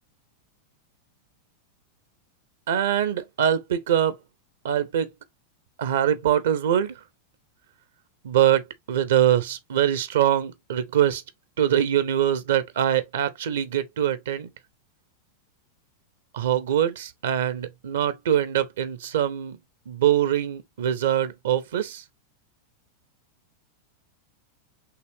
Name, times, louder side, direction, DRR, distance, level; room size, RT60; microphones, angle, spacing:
voice 1, 2.7-4.2 4.6-5.1 5.8-6.9 8.2-11.2 11.6-14.5 16.3-19.6 19.9-22.0, right 10 dB, 60° right, 0.6 m, -23 dB
5.8 x 3.1 x 2.7 m
figure-of-eight pair, 90°, 0 cm